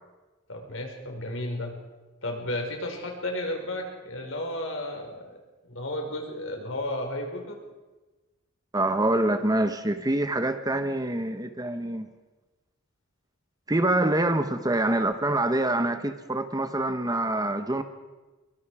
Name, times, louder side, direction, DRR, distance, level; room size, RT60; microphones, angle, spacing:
voice 1, 0.5-1.7 2.2-5.4 5.6-7.6, left 1 dB, 70° left, 2 dB, 5.1 m, -33 dB
voice 2, 8.7-12.1 13.7-17.8, right 1 dB, 20° right, 9 dB, 1.1 m, -25 dB
24.5 x 23.0 x 4.9 m, 1.2 s
head